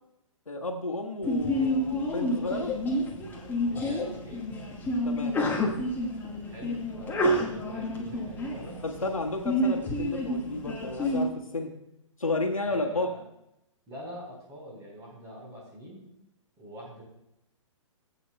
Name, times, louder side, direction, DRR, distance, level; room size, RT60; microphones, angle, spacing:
voice 1, 0.5-2.7 5.0-5.3 8.8-11.7 12.2-13.1, left 2 dB, 90° left, 2 dB, 1.4 m, -32 dB
Sneeze, 1.2-11.2, left 1 dB, 10° left, 1.3 m, -29 dB
voice 2, 3.6-4.5 6.4-8.8 12.6-13.2 13.9-16.1 16.6-17.0, equal, 20° right, -2 dB, 4.0 m, -44 dB
17.5 x 8.3 x 2.2 m, 0.85 s
figure-of-eight pair, 130°, 17 cm